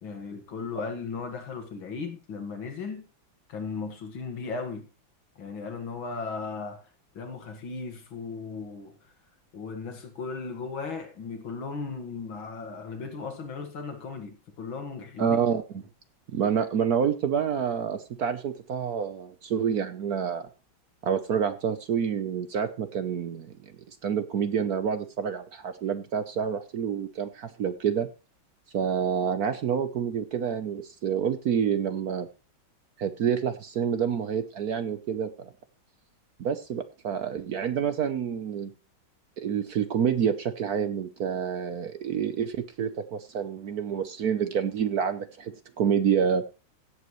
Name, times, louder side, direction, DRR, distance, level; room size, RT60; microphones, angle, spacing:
voice 1, 0.0-3.1 3.5-4.9 5.4-6.9 7.1-9.1 9.5-15.4, left 4 dB, 75° left, 2.6 m, -36 dB
voice 2, 15.2-15.6 16.3-20.4 21.0-28.1 28.7-32.3 33.0-35.5 36.4-38.7 39.4-46.5, right 7 dB, 60° right, 1.1 m, -28 dB
16.0 x 7.8 x 3.1 m
omnidirectional pair, 2.2 m